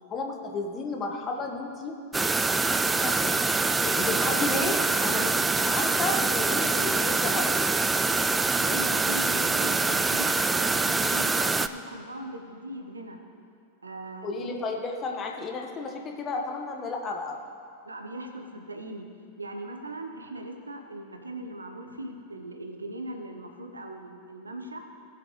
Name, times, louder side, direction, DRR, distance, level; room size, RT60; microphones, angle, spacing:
voice 1, 0.1-1.9 3.0-3.5 3.8-7.5 14.2-17.4, left 3 dB, 25° left, 1 dB, 1.5 m, -32 dB
sound 1, 2.1-11.7, right 3 dB, 10° right, 0.4 m, -25 dB
voice 2, 8.6-13.2 13.8-14.5 17.8-19.1 19.4-24.8, right 1 dB, 80° right, 4 dB, 1.1 m, -39 dB
19.5 x 7.3 x 3.3 m, 2.5 s
figure-of-eight pair, 90°, 0 cm